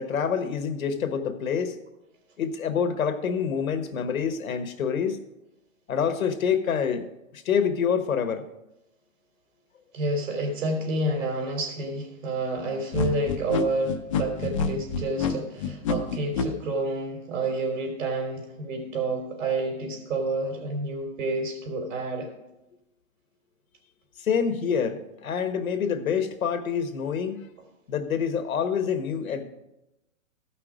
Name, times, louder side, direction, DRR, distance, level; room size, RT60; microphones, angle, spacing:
voice 1, 0.0-1.8 2.4-5.2 5.9-7.1 7.3-8.4 24.2-27.4 27.9-29.4, left 7 dB, 80° left, 8 dB, 1.4 m, -26 dB
voice 2, 9.9-22.3, right 2 dB, 65° right, 1 dB, 3.4 m, -29 dB
sound 1, 12.9-16.5, left 5 dB, 25° left, 0.5 m, -27 dB
14.5 x 5.9 x 5.0 m, 0.92 s
hypercardioid pair, 155°, 41 cm